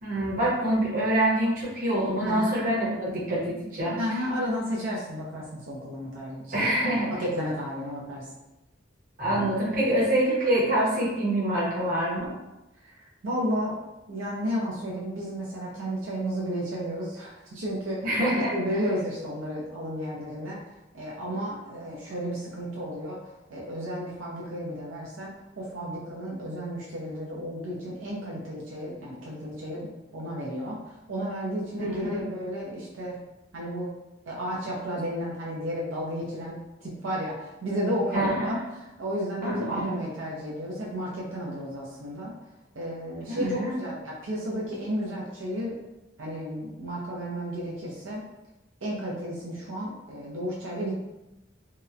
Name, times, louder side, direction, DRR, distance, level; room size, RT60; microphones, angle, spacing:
voice 1, 0.0-4.0 6.5-7.1 9.2-12.3 18.0-18.8 31.8-32.2 38.1-38.6 39.4-39.9 43.3-43.8, right 1 dB, 45° right, -6 dB, 0.8 m, -26 dB
voice 2, 2.2-2.5 4.0-8.3 12.8-13.8 14.1-18.1 18.5-20.6 20.9-23.2 23.5-30.8 31.1-33.2 33.5-34.0 34.3-42.3 42.7-45.7 46.2-48.2 48.8-50.9, equal, 85° right, -4 dB, 0.6 m, -33 dB
2.8 x 2.0 x 2.4 m, 0.97 s
head